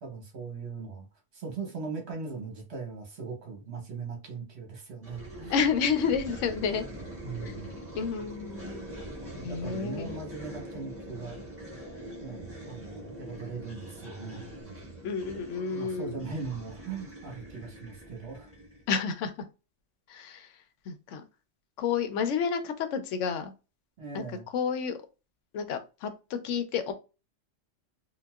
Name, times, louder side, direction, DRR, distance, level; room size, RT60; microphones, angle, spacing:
voice 1, 0.0-1.1 1.3-5.5 7.2-7.7 9.3-11.4 12.2-14.5 15.7-18.5 24.0-24.4, right 4 dB, 65° right, 1.2 m, -39 dB
sound 1, 5.0-18.9, right 1 dB, 10° right, 1.2 m, -43 dB
voice 2, 5.5-6.8 7.4-7.5 8.0-8.9 9.4-10.2 15.0-16.2 18.9-19.3 20.1-20.5 20.9-21.2 21.8-23.5 24.1-24.2 24.5-24.9 25.5-26.9, left 6 dB, 85° left, 0.9 m, -30 dB
3.8 x 2.2 x 2.3 m
omnidirectional pair, 1.2 m